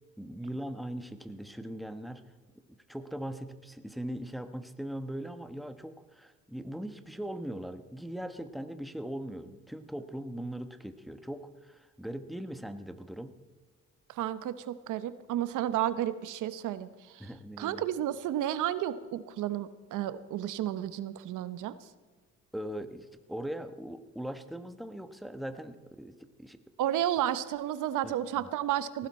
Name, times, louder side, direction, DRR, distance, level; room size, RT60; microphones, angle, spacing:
voice 1, 0.2-2.2 2.9-13.3 17.2-17.8 22.5-26.6 28.0-28.5, right 1 dB, ahead, 9 dB, 1.1 m, -40 dB
voice 2, 14.1-17.3 17.6-21.7 26.8-29.1, right 12 dB, 85° right, 14 dB, 0.9 m, -32 dB
18.0 x 15.5 x 4.3 m, 1.4 s
cardioid pair, 90°, 30 cm